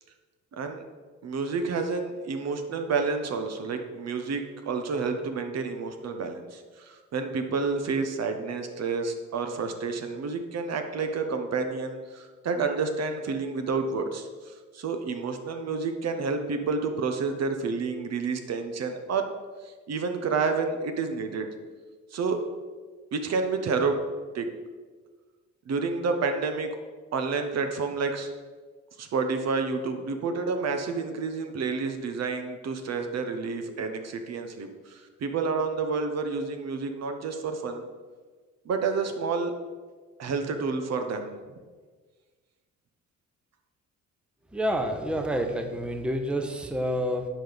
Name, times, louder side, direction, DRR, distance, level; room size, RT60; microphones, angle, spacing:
voice 1, 0.5-0.8 1.2-19.3 19.6-21.5 22.1-22.5 23.1-24.0 24.3-24.5 25.7-26.8 27.1-28.3 29.0-37.9 38.6-39.5 40.2-41.4, right 4 dB, 60° right, 6 dB, 1.0 m, -29 dB
voice 2, 44.5-47.3, equal, 5° right, 5 dB, 0.8 m, -28 dB
10.0 x 5.2 x 4.0 m, 1.4 s
cardioid pair, 90°, 30 cm